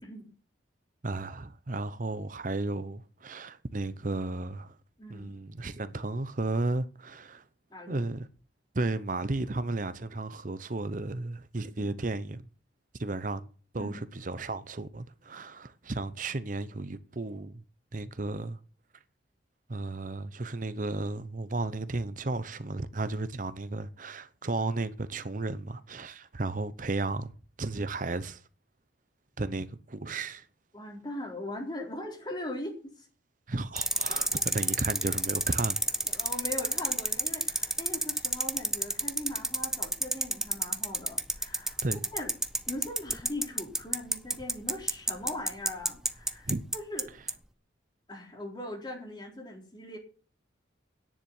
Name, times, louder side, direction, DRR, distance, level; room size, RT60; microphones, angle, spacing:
voice 1, 1.0-4.8 5.1-7.4 7.9-8.3 8.7-12.4 13.0-13.5 13.7-17.6 17.9-18.6 19.7-27.3 27.6-28.4 29.4-30.5 33.5-35.8 41.8-42.0 46.5-46.6, right 2 dB, 45° right, 0.8 m, -34 dB
voice 2, 5.0-5.3 7.7-8.1 13.8-14.0 30.7-33.1 34.1-34.4 36.0-41.8 42.1-42.3 42.7-47.1 48.1-50.0, left 1 dB, 25° left, 4.0 m, -40 dB
sound 1, 33.8-47.0 47.3-47.4, right 1 dB, 5° right, 0.6 m, -28 dB
10.0 x 7.3 x 9.3 m
head